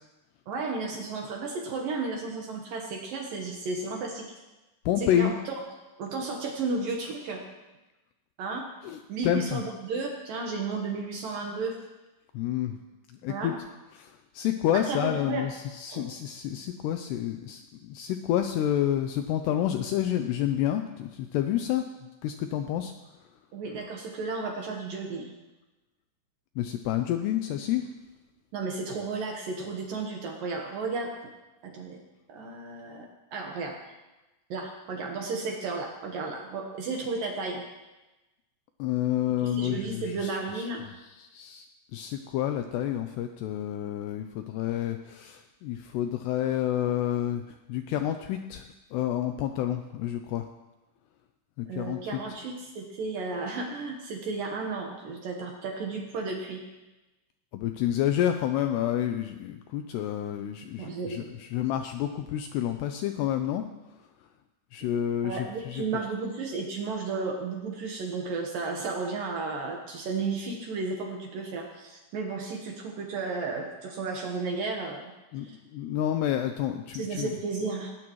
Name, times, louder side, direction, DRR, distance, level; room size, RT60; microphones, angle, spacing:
voice 1, 0.5-4.3 5.0-5.5 6.0-7.4 8.4-8.7 9.1-11.8 13.3-13.5 14.7-15.5 15.9-16.1 23.5-25.3 28.5-31.1 31.6-32.0 32.3-33.8 34.5-37.6 39.4-40.8 51.7-56.6 60.8-61.3 65.2-75.0 75.4-75.6 76.9-77.9, right 4 dB, 65° right, 1 dB, 2.4 m, -33 dB
voice 2, 4.9-5.3 8.8-9.6 12.3-12.8 13.2-13.5 14.0-21.8 22.2-22.9 26.6-27.8 38.8-40.7 41.2-41.7 41.9-48.6 48.9-50.5 51.6-52.2 57.5-63.7 64.7-65.8 75.3-77.3, left 11 dB, 80° left, 7 dB, 2.4 m, -29 dB
18.5 x 18.5 x 3.1 m, 1.1 s
omnidirectional pair, 5.4 m